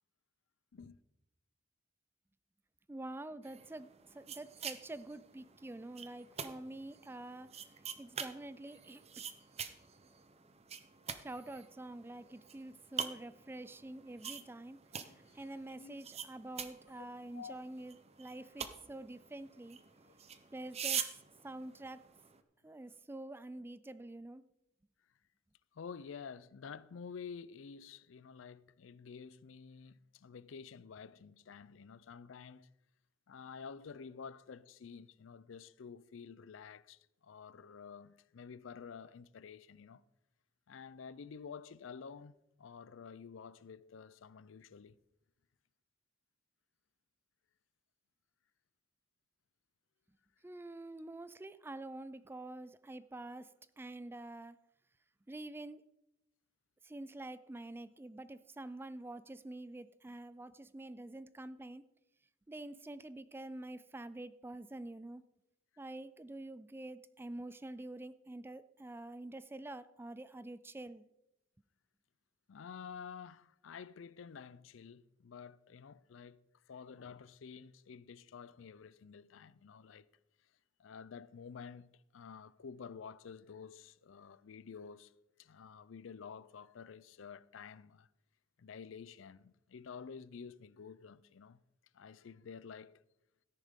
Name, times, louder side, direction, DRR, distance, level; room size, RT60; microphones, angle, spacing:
voice 1, 2.9-7.5 8.0-9.3 11.2-14.8 15.3-19.8 20.5-21.2 21.4-22.0 22.6-24.4 50.4-53.5 53.8-54.6 55.3-55.8 56.8-61.8 62.5-65.2 65.8-71.0, right 2 dB, 10° right, 0.3 m, -47 dB
sound 1, 3.4-22.4, right 7 dB, 30° right, 0.7 m, -46 dB
voice 2, 14.9-16.0 17.0-17.1 17.3-17.7 20.1-20.2 25.7-32.7 33.3-40.0 40.7-45.0 72.5-76.4 76.7-80.1 80.8-85.1 85.4-88.1 88.6-91.6 91.9-93.0, left 6 dB, 75° left, 0.4 m, -50 dB
13.5 x 10.0 x 3.7 m
head